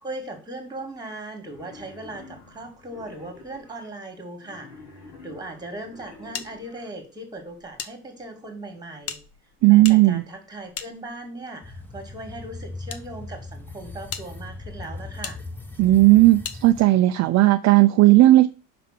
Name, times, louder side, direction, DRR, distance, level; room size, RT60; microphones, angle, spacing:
voice 1, 0.0-4.8 5.2-9.2 9.7-15.4, right 2 dB, 10° right, 2.1 m, -38 dB
Wild animals, 1.4-3.9 4.4-6.9, left 3 dB, 90° left, 3.2 m, -47 dB
sound 1, 6.3-7.9 8.2-8.3 9.0-11.5 12.3-13.0 13.6-13.7 14.1-14.3 15.2-15.4 16.4-16.6, left 7 dB, 40° left, 0.9 m, -37 dB
voice 2, 9.6-10.2 15.8-18.5, right 17 dB, 45° right, 0.5 m, -15 dB
sound 2, 11.6-16.8, left 3 dB, 5° left, 1.0 m, -39 dB
5.8 x 3.7 x 5.8 m
supercardioid pair, 115°, 37 cm